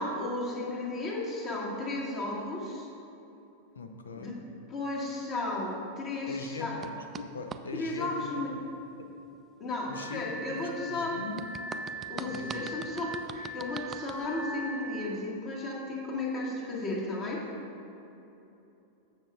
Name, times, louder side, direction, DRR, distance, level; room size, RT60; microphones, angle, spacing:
voice 1, 0.0-2.9 4.2-4.3 4.7-6.8 7.7-8.5 9.6-11.2 12.1-17.4, left 2 dB, 30° left, -3 dB, 1.9 m, -34 dB
voice 2, 3.8-4.4 6.3-8.4 9.0-9.1 9.9-11.5 12.1-12.7, left 3 dB, 70° left, 6 dB, 0.6 m, -41 dB
sound 1, 6.8-7.6 11.4-14.3, right 6 dB, 25° right, 0.3 m, -42 dB
Glass, 9.9-15.0, equal, 15° left, 1.6 m, -41 dB
15.0 x 6.4 x 2.5 m, 2.9 s
figure-of-eight pair, 90°, 0 cm